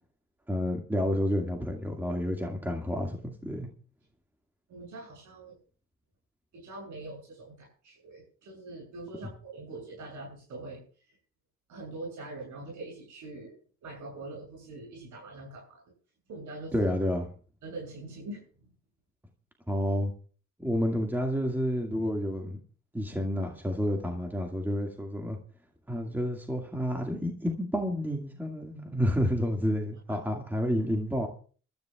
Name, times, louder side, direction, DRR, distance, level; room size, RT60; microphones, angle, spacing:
voice 1, 0.5-3.7 16.7-17.3 19.7-20.1 20.6-22.6 22.9-25.4 25.9-31.3, equal, 5° right, 1 dB, 2.0 m, -30 dB
voice 2, 4.7-5.6 6.5-10.8 11.7-15.8 16.3-16.8 17.6-18.4 30.1-30.2, right 2 dB, 75° right, -1 dB, 7.6 m, -43 dB
26.0 x 13.5 x 2.4 m, 0.40 s
cardioid pair, 90°, 30 cm